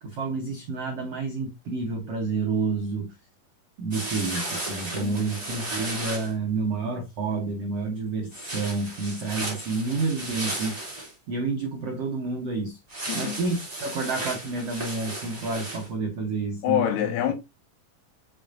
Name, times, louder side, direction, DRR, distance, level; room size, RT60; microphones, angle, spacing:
voice 1, 0.0-3.2 3.8-10.9 11.3-12.8 13.1-17.2, right 3 dB, 85° right, 1.3 m, -29 dB
sound 1, 3.9-6.3 8.3-11.1 12.9-15.9, right 2 dB, 10° right, 2.0 m, -34 dB
voice 2, 13.1-13.4 16.6-17.3, left 11 dB, 80° left, 3.1 m, -26 dB
6.8 x 6.8 x 2.6 m
omnidirectional pair, 4.6 m